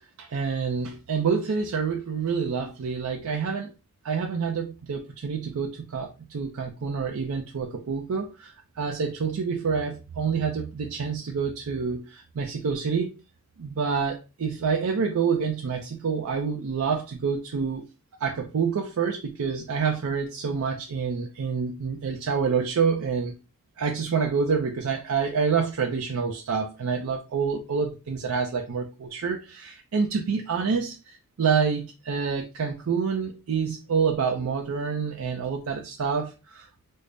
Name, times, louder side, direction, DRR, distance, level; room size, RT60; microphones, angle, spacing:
voice 1, 0.0-3.7 4.0-13.1 13.6-17.8 18.2-23.4 23.8-36.7, right 5 dB, 80° right, 2 dB, 0.5 m, -27 dB
3.4 x 2.0 x 3.8 m, 0.29 s
head